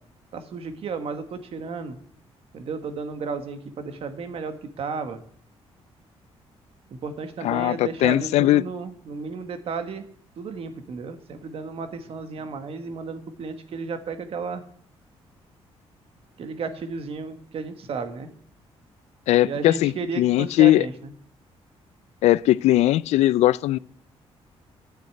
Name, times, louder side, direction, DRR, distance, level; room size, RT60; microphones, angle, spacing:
voice 1, 0.3-2.0 2.5-5.2 6.9-10.0 10.4-14.6 16.4-18.3 19.4-21.1, right 5 dB, 60° right, 1.5 m, -33 dB
voice 2, 7.4-8.6 19.3-20.9 22.2-23.8, left 15 dB, 90° left, 0.4 m, -19 dB
11.5 x 6.6 x 8.9 m
cardioid pair, 115°, 11 cm